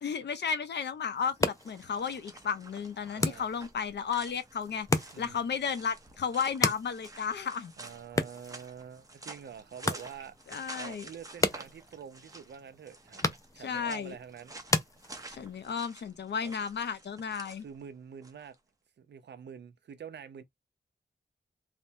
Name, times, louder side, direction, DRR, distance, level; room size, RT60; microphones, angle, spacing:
voice 1, 0.0-4.9 5.2-7.7 10.5-11.1 13.6-14.2 15.3-17.6, left 6 dB, 80° left, 0.6 m, -33 dB
sound 1, 1.0-18.6, right 2 dB, 20° right, 0.6 m, -50 dB
sound 2, 1.2-15.7, left 3 dB, 20° left, 0.4 m, -36 dB
voice 2, 3.1-3.5 5.1-5.5 7.8-14.5 16.4-16.6 17.6-18.6 19.0-20.4, right 7 dB, 80° right, 0.6 m, -47 dB
3.3 x 2.0 x 2.6 m
wide cardioid pair, 150°, 18 cm